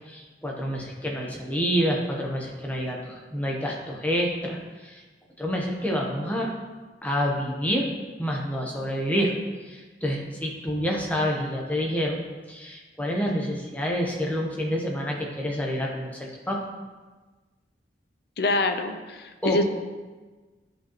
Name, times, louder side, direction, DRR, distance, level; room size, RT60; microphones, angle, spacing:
voice 1, 0.1-5.0 5.4-6.5 7.0-7.9 8.2-9.3 9.6-12.2 12.5-16.6 19.4-19.6, equal, 10° left, -1 dB, 0.9 m, -28 dB
voice 2, 18.4-19.6, left 2 dB, 60° left, 6 dB, 0.6 m, -25 dB
11.0 x 4.9 x 3.0 m, 1.3 s
head